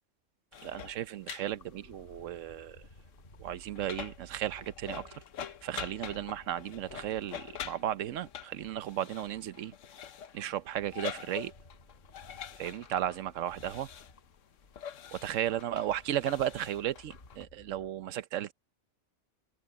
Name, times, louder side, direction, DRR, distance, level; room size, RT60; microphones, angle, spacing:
sound 1, 0.5-17.4, left 8 dB, 90° left, 1.3 m, -46 dB
voice 1, 0.6-2.8 3.4-9.7 10.3-11.5 12.6-13.9 15.1-18.5, right 11 dB, 90° right, 1.1 m, -35 dB
sound 2, 1.5-17.9, left 1 dB, 50° left, 5.4 m, -59 dB
omnidirectional pair, 1.3 m